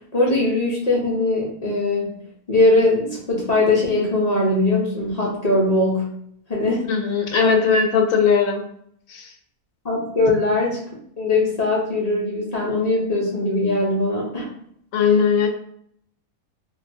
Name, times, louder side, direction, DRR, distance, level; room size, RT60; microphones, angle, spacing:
voice 1, 0.1-2.1 2.5-6.1 6.5-6.8 7.4-7.5 9.8-10.8 11.2-14.5, left 2 dB, 45° left, -5 dB, 0.5 m, -20 dB
voice 2, 6.9-8.6 9.1-9.3 14.9-15.5, left 6 dB, 70° left, 3 dB, 0.9 m, -19 dB
3.0 x 2.5 x 2.6 m, 0.68 s
omnidirectional pair, 1.6 m